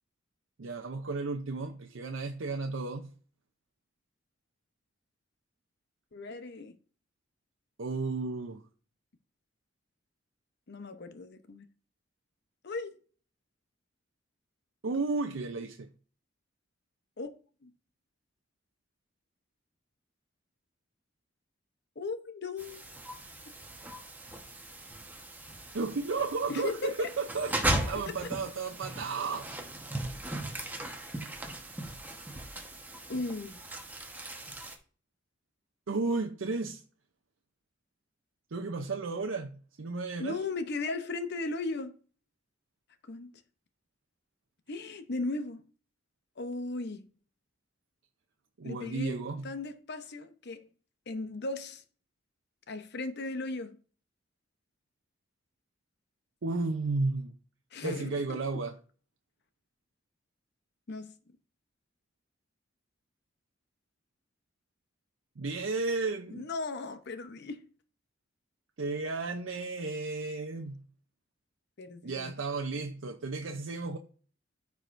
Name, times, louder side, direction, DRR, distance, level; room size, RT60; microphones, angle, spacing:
voice 1, 0.6-3.1 7.8-8.6 14.8-15.9 25.7-27.5 27.9-29.5 35.9-36.8 38.5-40.4 48.6-49.5 56.4-57.3 57.8-58.8 65.4-66.5 68.8-70.8 72.0-74.0, right 3 dB, 75° right, 0.6 m, -33 dB
voice 2, 6.1-6.8 10.7-11.7 12.6-12.9 17.2-17.3 17.6-17.7 22.0-22.8 26.5-27.1 28.1-28.3 33.1-33.6 40.2-42.0 43.1-43.3 44.7-45.6 46.4-47.1 48.6-50.7 51.1-51.8 52.7-53.8 57.7-58.4 60.9-61.1 66.3-67.6 71.8-72.3, left 3 dB, 60° left, 0.8 m, -37 dB
sound 1, 22.6-34.8, right 1 dB, 10° right, 1.1 m, -38 dB
13.5 x 4.7 x 2.6 m
head